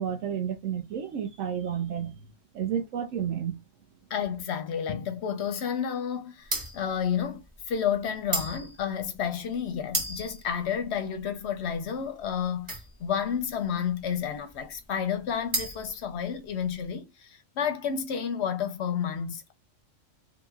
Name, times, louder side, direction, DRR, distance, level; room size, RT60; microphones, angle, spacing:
voice 1, 0.0-2.3 2.5-3.6, right 8 dB, 80° right, 1.0 m, -31 dB
voice 2, 4.1-19.5, left 7 dB, 65° left, 0.8 m, -31 dB
sound 1, 6.4-16.8, right 2 dB, 25° right, 0.8 m, -36 dB
2.9 x 2.7 x 2.3 m
omnidirectional pair, 1.3 m